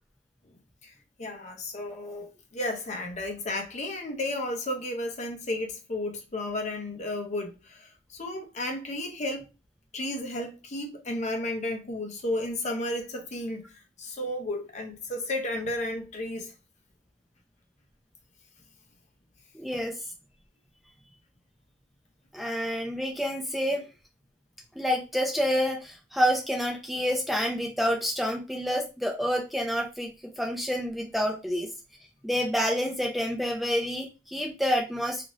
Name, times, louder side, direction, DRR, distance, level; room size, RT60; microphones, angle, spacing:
voice 1, 1.2-9.4 9.9-13.7 14.0-16.5, left 1 dB, 40° left, 0.7 m, -33 dB
voice 2, 19.5-20.0 22.3-23.8 24.8-31.7 32.2-35.3, equal, ahead, 0.4 m, -28 dB
2.7 x 2.5 x 3.0 m
head